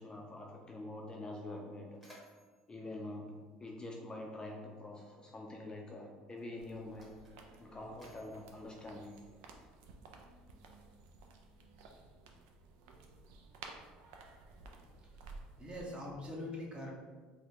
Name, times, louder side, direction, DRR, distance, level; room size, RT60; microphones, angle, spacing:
voice 1, 0.0-2.0 2.7-7.3 7.6-9.3, left 2 dB, 20° left, 0 dB, 0.4 m, -46 dB
Mechanisms, 1.9-4.2 5.2-5.4 6.2-9.8, equal, 5° right, 1.1 m, -64 dB
sound 1, 6.6-15.8, right 3 dB, 70° right, 0.4 m, -55 dB
voice 2, 15.6-16.9, left 1 dB, 25° right, -2 dB, 0.9 m, -43 dB
4.0 x 2.2 x 3.0 m, 1.4 s
hypercardioid pair, 70°, 4 cm